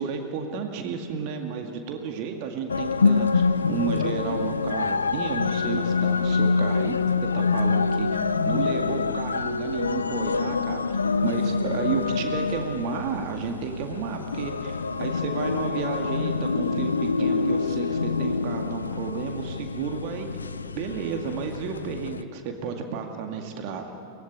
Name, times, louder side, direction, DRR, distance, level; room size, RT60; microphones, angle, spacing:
voice 1, 0.0-3.4 3.7-8.1 8.4-10.8 11.2-20.3 20.8-23.9, right 6 dB, 45° right, 4 dB, 2.1 m, -32 dB
sound 1, 2.7-22.2, left 4 dB, 75° left, 0.6 m, -26 dB
23.5 x 19.0 x 8.7 m, 2.9 s
figure-of-eight pair, 90°, 0 cm